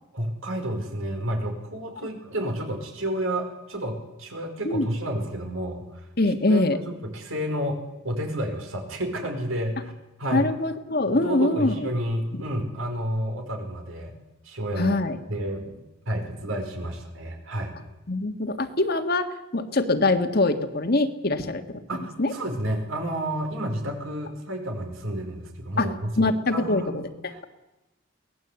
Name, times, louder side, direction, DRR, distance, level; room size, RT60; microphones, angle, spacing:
voice 1, 0.1-6.1 6.5-9.9 10.2-10.5 11.1-14.1 14.4-15.0 15.3-15.7 16.0-17.7 21.9-27.0 27.3-27.5, right 1 dB, 85° right, 4 dB, 5.0 m, -30 dB
voice 2, 6.2-6.8 10.3-11.9 12.3-12.4 14.8-15.2 18.1-22.3 25.8-25.9 26.2-27.4, left 2 dB, 50° left, 8 dB, 1.6 m, -24 dB
23.5 x 18.5 x 8.1 m, 1.0 s
head